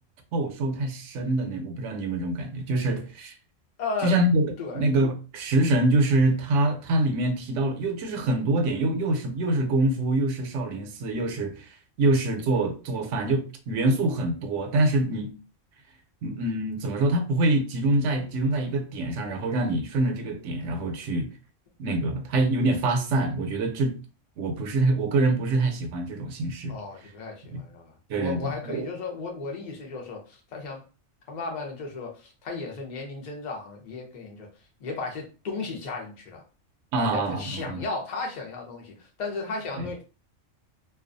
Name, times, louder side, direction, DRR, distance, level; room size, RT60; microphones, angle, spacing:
voice 1, 0.3-3.3 4.0-15.3 16.2-21.3 21.8-23.9 24.4-26.8 27.5-27.6 28.1-28.9 36.9-37.8 39.8-39.9, right 2 dB, 75° right, 0.9 m, -25 dB
voice 2, 3.8-4.2 4.6-4.9 20.9-21.0 26.7-30.8 31.3-34.5 34.8-36.4 36.9-40.0, left 3 dB, 45° left, 0.7 m, -35 dB
2.3 x 2.3 x 2.5 m
omnidirectional pair, 1.3 m